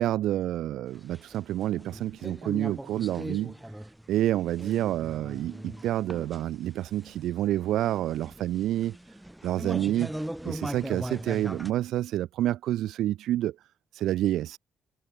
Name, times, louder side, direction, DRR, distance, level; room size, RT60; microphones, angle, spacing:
voice 1, 0.0-3.5 4.1-9.0 9.4-10.1 10.4-13.5 13.9-14.6, right 13 dB, 80° right, 4.3 m, -28 dB
sound 1, 1.0-11.7, right 1 dB, 5° right, 5.0 m, -40 dB
cardioid pair, 90°, 0 cm